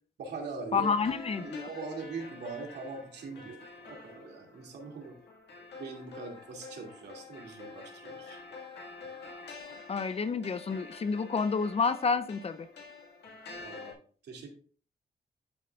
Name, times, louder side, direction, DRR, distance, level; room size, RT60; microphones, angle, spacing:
voice 1, 0.2-0.9 1.4-5.2 5.8-8.4 13.6-13.9 14.2-14.5, right 4 dB, 90° right, 1 dB, 2.5 m, -42 dB
voice 2, 0.7-1.7 9.9-12.7, left 5 dB, 35° left, 13 dB, 0.6 m, -29 dB
sound 1, 0.8-13.9, left 4 dB, 85° left, 1.9 m, -48 dB
12.0 x 5.9 x 2.4 m, 0.43 s
cardioid pair, 110°, 17 cm